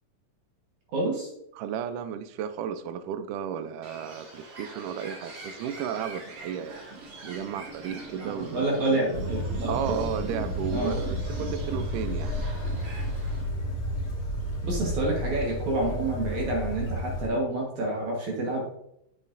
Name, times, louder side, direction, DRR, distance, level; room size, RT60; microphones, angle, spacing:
voice 1, 0.9-1.3 8.2-9.7 10.7-11.0 14.6-18.7, right 2 dB, 65° right, -2 dB, 2.6 m, -28 dB
voice 2, 1.5-6.8 7.2-8.9 9.7-12.3, right 8 dB, 80° right, 12 dB, 2.0 m, -34 dB
Bird, 3.8-13.4, right 2 dB, 45° right, 1.7 m, -46 dB
sound 1, 5.2-14.9, right 3 dB, 25° right, 3.0 m, -43 dB
sound 2, 9.1-17.3, equal, 45° left, 2.4 m, -32 dB
8.0 x 7.4 x 2.6 m, 0.79 s
omnidirectional pair, 3.9 m